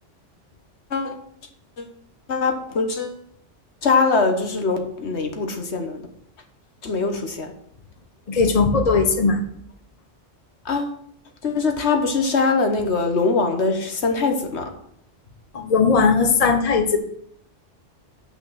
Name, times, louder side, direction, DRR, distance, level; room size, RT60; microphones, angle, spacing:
voice 1, 2.3-3.2 3.8-6.1 6.8-7.5 10.6-11.0 11.4-14.7, left 4 dB, 70° left, 5 dB, 1.4 m, -22 dB
voice 2, 8.3-9.4 15.5-17.0, left 4 dB, 35° left, 5 dB, 1.0 m, -18 dB
8.3 x 5.9 x 5.7 m, 0.67 s
omnidirectional pair, 1.2 m